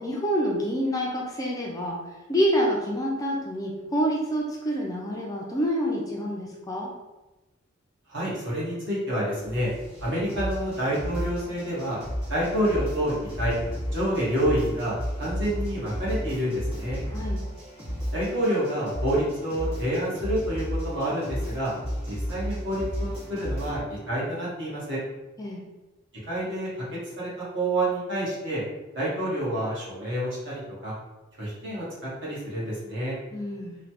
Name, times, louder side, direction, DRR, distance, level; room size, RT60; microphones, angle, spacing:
voice 1, 0.0-2.0 2.3-6.9 17.1-17.4 25.4-25.6 33.3-33.8, equal, 15° left, -2 dB, 0.3 m, -27 dB
voice 2, 8.1-9.7 10.0-12.0 12.3-13.5 13.9-17.0 18.1-21.7 22.0-25.0 26.3-26.7 27.2-28.6 28.9-30.9 31.4-33.2, right 1 dB, 60° right, -8 dB, 1.3 m, -28 dB
sound 1, 9.4-23.8, equal, 30° right, 1.1 m, -33 dB
3.1 x 2.2 x 2.8 m, 1.1 s
head